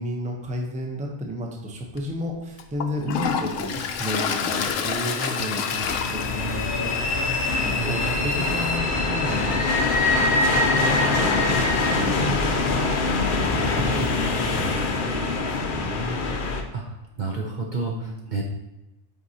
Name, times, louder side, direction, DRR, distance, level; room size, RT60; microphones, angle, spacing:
voice 1, 0.0-9.6 10.0-16.3 17.9-18.3, equal, 10° right, 1 dB, 0.6 m, -33 dB
Toilet flush, 1.9-2.0 2.6-8.8, left 7 dB, 85° left, 0.9 m, -30 dB
sound 1, 4.8-12.0, left 1 dB, 35° left, 1.1 m, -27 dB
sound 2, 5.8-16.6, left 3 dB, 50° left, 0.7 m, -25 dB
voice 2, 17.2-18.4, right 3 dB, 45° right, 0 dB, 0.7 m, -29 dB
7.9 x 4.5 x 2.8 m, 0.95 s
omnidirectional pair, 1.3 m